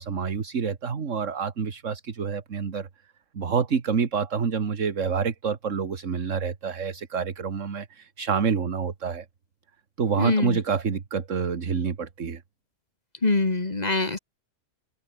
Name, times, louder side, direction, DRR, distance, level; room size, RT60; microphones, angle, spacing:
voice 1, 0.0-2.9 3.3-9.3 10.0-12.4, right 6 dB, 50° right, 2.0 m, -27 dB
voice 2, 10.2-10.6 13.2-14.2, left 3 dB, 25° left, 1.8 m, -24 dB
omnidirectional pair, 1.7 m